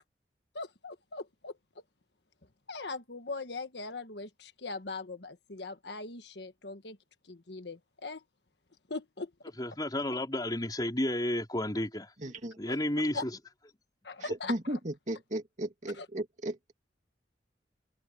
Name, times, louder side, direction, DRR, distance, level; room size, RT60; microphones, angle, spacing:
voice 1, 0.5-1.5 2.7-7.0 7.3-8.2 8.9-9.3 12.7-12.8 13.1-13.2 14.0-14.8 15.9-16.1, left 3 dB, 70° left, 1.4 m, -40 dB
voice 2, 9.6-12.1 12.6-13.3, left 1 dB, 20° left, 4.4 m, -31 dB
voice 3, 12.2-12.8 14.2-16.7, right 1 dB, 45° right, 2.8 m, -36 dB
head